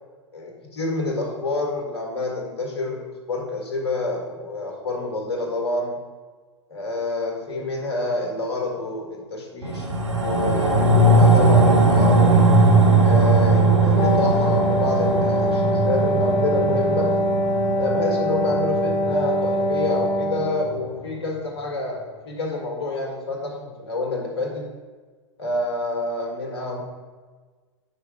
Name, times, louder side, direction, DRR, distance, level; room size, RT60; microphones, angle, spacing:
voice 1, 0.3-6.0 6.7-9.9 10.2-12.4 13.0-17.1 17.8-24.7 25.4-26.8, left 2 dB, 55° left, 1 dB, 1.6 m, -28 dB
sound 1, 9.6-20.2 20.6-20.7, right 2 dB, 75° right, 1.0 m, -19 dB
Wind instrument woodwind instrument, 14.0-20.7, equal, 35° left, 0.7 m, -23 dB
5.5 x 4.8 x 4.9 m, 1.4 s
figure-of-eight pair, 100°, 16 cm